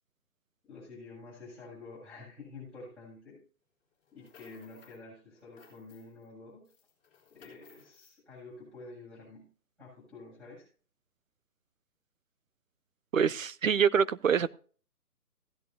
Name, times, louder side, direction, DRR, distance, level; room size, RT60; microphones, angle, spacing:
voice 1, 0.7-3.4 4.1-6.7 7.3-9.5 9.8-10.7, left 3 dB, ahead, 7.5 m, -49 dB
sound 1, 4.0-5.0 5.4-6.3 6.6-8.2, left 6 dB, 15° left, 4.0 m, -60 dB
voice 2, 13.1-14.5, right 7 dB, 60° right, 0.8 m, -25 dB
16.0 x 11.0 x 2.8 m
figure-of-eight pair, 140°, 46 cm